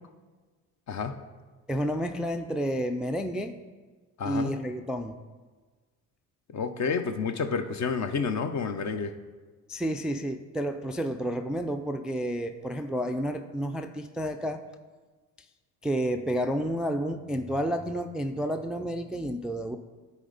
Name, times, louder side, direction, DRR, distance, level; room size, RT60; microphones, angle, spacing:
voice 1, 1.7-3.6 4.3-5.2 9.7-14.6 15.8-19.8, equal, ahead, 8 dB, 0.3 m, -30 dB
voice 2, 4.2-4.5 6.5-9.1, left 5 dB, 45° left, 8 dB, 0.8 m, -29 dB
10.0 x 4.3 x 4.0 m, 1.4 s
supercardioid pair, 70°, 38 cm